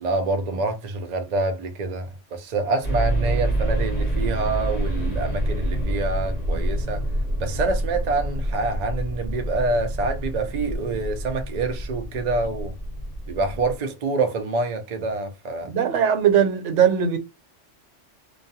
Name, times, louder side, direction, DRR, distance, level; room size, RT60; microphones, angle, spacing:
voice 1, 0.0-7.0 7.4-12.7 13.3-15.7, right 3 dB, 55° right, 0.4 m, -26 dB
sound 1, 2.8-13.7, right 1 dB, 40° left, 0.7 m, -27 dB
voice 2, 15.7-17.2, right 8 dB, 85° right, 0.9 m, -19 dB
2.3 x 2.3 x 2.7 m
omnidirectional pair, 1.2 m